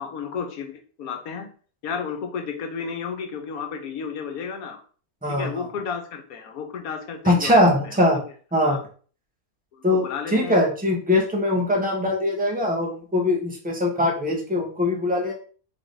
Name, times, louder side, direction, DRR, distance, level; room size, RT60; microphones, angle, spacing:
voice 1, 0.0-1.5 1.8-4.8 5.2-8.2 8.6-8.8 9.7-10.6, left 6 dB, 80° left, 5 dB, 1.3 m, -33 dB
voice 2, 7.2-8.2 8.5-8.8 9.8-10.1 10.3-15.3, left 1 dB, 5° right, 0 dB, 0.9 m, -21 dB
3.9 x 3.5 x 3.9 m, 0.42 s
omnidirectional pair, 1.5 m